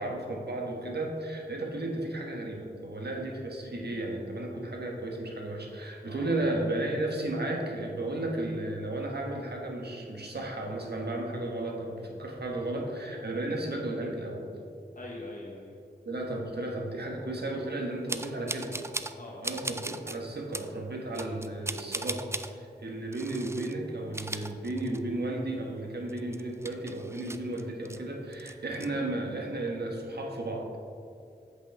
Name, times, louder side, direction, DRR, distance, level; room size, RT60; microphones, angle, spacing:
voice 1, 0.0-14.5 16.0-18.7 19.4-30.6, right 2 dB, 70° right, 0 dB, 1.3 m, -34 dB
voice 2, 15.0-15.8 19.1-19.6 28.7-29.0, left 2 dB, 50° left, -3 dB, 1.0 m, -44 dB
sound 1, 18.1-19.2 19.4-20.2 20.5-20.7 21.1-22.5 23.1-23.7 24.0-25.2 25.6-25.7 26.1-28.0 28.3-28.9, right 2 dB, 15° right, 0.4 m, -37 dB
8.1 x 8.1 x 3.4 m, 2.5 s
wide cardioid pair, 60°, 18 cm